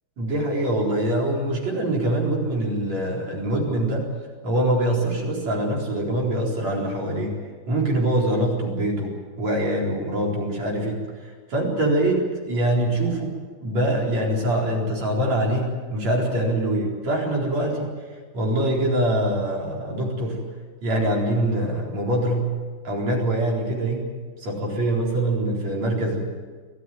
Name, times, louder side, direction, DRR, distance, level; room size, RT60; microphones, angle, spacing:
voice 1, 0.2-4.1 4.4-7.4 7.7-18.0 18.3-20.4 20.8-22.5 22.8-24.1 24.4-26.2, right 1 dB, 45° right, -2 dB, 5.3 m, -24 dB
24.5 x 15.0 x 9.3 m, 1.5 s
omnidirectional pair, 4.6 m